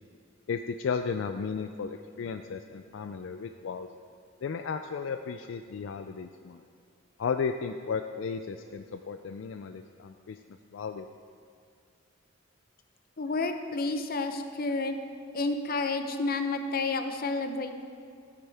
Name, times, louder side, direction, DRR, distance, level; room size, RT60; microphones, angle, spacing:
voice 1, 0.5-3.9 4.4-6.6 7.2-10.4 10.7-11.1, left 5 dB, 70° left, 8 dB, 0.4 m, -34 dB
voice 2, 13.2-15.0 15.3-17.7, left 3 dB, 50° left, 7 dB, 0.7 m, -30 dB
13.0 x 9.7 x 3.4 m, 2.5 s
head